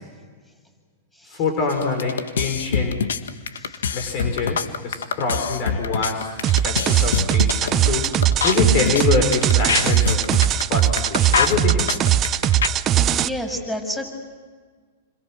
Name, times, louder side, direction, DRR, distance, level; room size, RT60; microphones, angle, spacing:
voice 1, 1.3-3.0 3.9-8.1 8.4-10.2 10.7-12.1, left 4 dB, 45° left, 4 dB, 6.0 m, -25 dB
sound 1, 1.7-12.7, left 6 dB, 85° left, 1.6 m, -24 dB
sound 2, 6.4-13.3, right 11 dB, 30° right, 0.9 m, -20 dB
voice 2, 13.1-14.0, equal, 10° left, 4 dB, 7.7 m, -29 dB
29.5 x 26.5 x 6.4 m, 1.5 s
hypercardioid pair, 125°, 0 cm